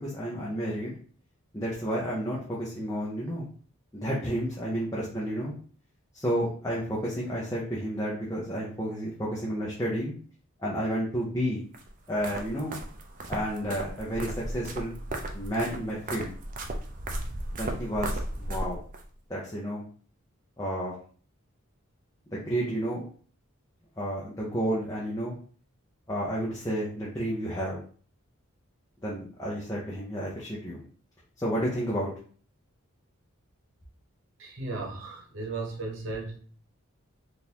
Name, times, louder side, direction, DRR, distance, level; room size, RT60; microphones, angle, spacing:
voice 1, 0.0-1.0 1.5-3.5 3.9-5.5 6.1-10.1 10.6-11.6 12.1-12.7 13.3-15.0 15.3-16.3 17.5-18.8 19.3-19.8 20.6-21.0 22.3-23.0 24.0-25.3 26.1-27.8 29.0-30.8 31.4-32.1, equal, 15° left, -6 dB, 0.7 m, -31 dB
sound 1, 11.7-19.0, right 1 dB, 40° right, 0.5 m, -36 dB
voice 2, 34.4-36.4, right 3 dB, 65° right, -1 dB, 1.0 m, -35 dB
3.7 x 2.5 x 2.8 m, 0.43 s
head